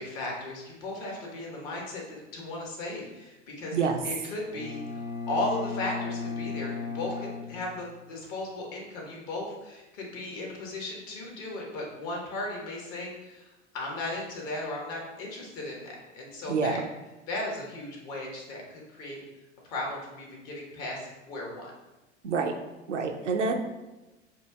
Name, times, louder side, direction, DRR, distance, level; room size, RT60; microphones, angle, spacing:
voice 1, 0.0-16.8 17.3-19.2 19.7-21.7, left 2 dB, 50° left, -1 dB, 1.5 m, -36 dB
Bowed string instrument, 4.5-8.4, left 4 dB, 90° left, 0.8 m, -36 dB
voice 2, 16.5-16.8 22.2-22.5 22.9-23.6, right 5 dB, 80° right, 4 dB, 0.6 m, -27 dB
6.8 x 2.7 x 2.3 m, 1.1 s
figure-of-eight pair, 85°, 36 cm